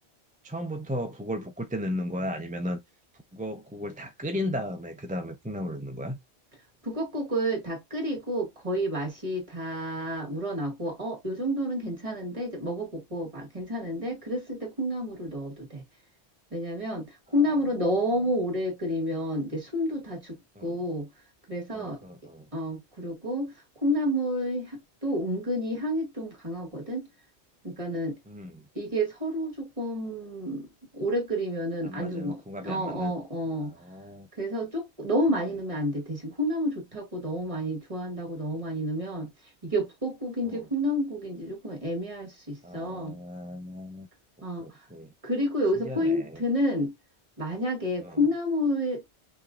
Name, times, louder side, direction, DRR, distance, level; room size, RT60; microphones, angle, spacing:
voice 1, 0.4-2.8 3.3-6.2 20.6-20.8 21.7-22.5 28.3-28.7 31.8-33.1 33.5-34.3 35.3-35.5 40.4-40.6 42.6-44.1 44.6-45.1 45.8-46.4 48.0-48.2, equal, 10° right, 0.4 m, -35 dB
voice 2, 6.8-15.8 16.5-21.1 21.5-22.0 22.5-23.5 23.8-27.1 27.6-28.2 28.8-30.7 30.9-33.7 34.4-39.3 39.6-43.2 44.4-44.7 45.2-46.9 47.4-49.1, equal, 30° right, 2.0 m, -30 dB
5.6 x 3.2 x 2.5 m
omnidirectional pair, 1.1 m